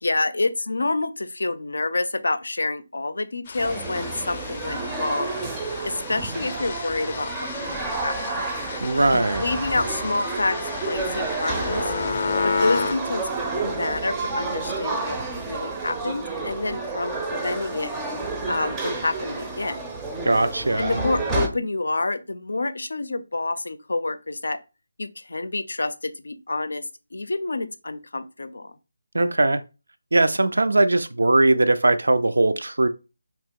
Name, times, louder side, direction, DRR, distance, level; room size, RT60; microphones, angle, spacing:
voice 1, 0.0-5.4 5.8-8.2 9.4-11.8 12.4-15.2 15.5-17.9 18.5-20.0 20.8-24.6 25.0-26.8 27.1-28.8, left 2 dB, 75° left, 0.5 m, -28 dB
sound 1, 3.5-12.9, left 4 dB, 30° left, 0.5 m, -32 dB
sound 2, 3.6-21.5, right 3 dB, 10° right, 0.5 m, -30 dB
voice 2, 8.8-9.4 20.3-21.0 29.1-29.6 30.1-32.9, right 2 dB, 80° right, 0.4 m, -20 dB
2.9 x 2.8 x 3.6 m
figure-of-eight pair, 160°, 0 cm